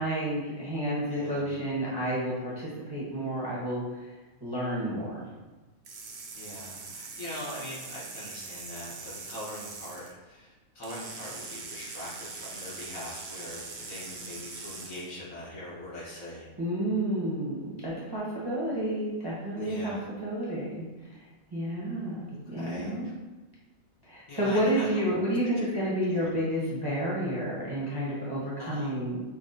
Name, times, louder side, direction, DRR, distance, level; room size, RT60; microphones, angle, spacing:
voice 1, 0.0-4.1 4.4-5.2 16.6-20.8 21.1-21.2 21.5-22.2 22.5-23.1 24.1-29.2, right 1 dB, 25° right, -7 dB, 0.6 m, -30 dB
voice 2, 1.1-1.5 6.3-16.5 19.5-20.0 22.3-23.1 24.3-25.0 25.6-25.7 26.1-26.3 28.6-29.0, left 1 dB, 80° left, -7 dB, 1.6 m, -42 dB
sound 1, 5.8-10.1 10.8-15.1, right 4 dB, 80° right, 0.4 m, -42 dB
5.7 x 2.1 x 2.6 m, 1.2 s
omnidirectional pair, 1.4 m